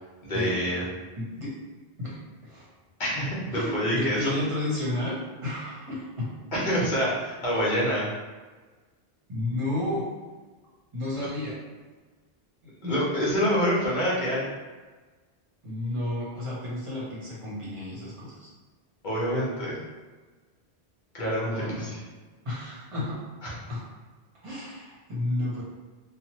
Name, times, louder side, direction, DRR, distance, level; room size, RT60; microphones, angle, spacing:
voice 1, 0.2-0.8 3.0-4.3 6.5-8.1 11.2-11.3 12.8-14.5 19.0-19.8 21.1-22.0 23.4-23.5, equal, 50° left, -6 dB, 1.0 m, -26 dB
voice 2, 1.2-1.5 2.0-2.7 3.5-5.2 5.4-6.3 7.5-7.8 9.3-10.1 10.9-11.6 12.6-13.0 15.6-18.5 21.5-21.9 22.4-23.2 23.7-23.8 24.4-25.6, left 1 dB, 30° right, -8 dB, 0.9 m, -32 dB
3.1 x 2.1 x 2.9 m, 1.3 s
omnidirectional pair, 1.1 m